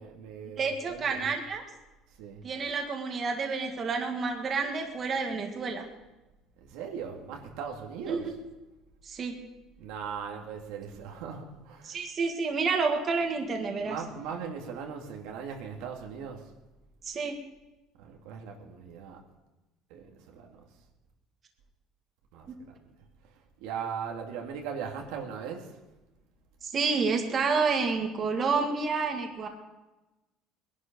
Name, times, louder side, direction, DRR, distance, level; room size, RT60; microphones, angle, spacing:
voice 1, 0.0-1.3 2.2-2.4 6.6-8.4 9.8-12.0 13.8-16.5 18.0-19.2 19.9-20.7 22.3-22.8 23.2-25.8, right 6 dB, 85° right, 2 dB, 2.2 m, -39 dB
voice 2, 0.6-1.6 2.4-5.9 8.1-8.3 9.0-9.4 11.8-14.0 17.0-17.4 26.6-29.5, right 4 dB, 35° right, 3 dB, 1.9 m, -29 dB
20.5 x 11.5 x 5.3 m, 1.1 s
cardioid pair, 135°, 0 cm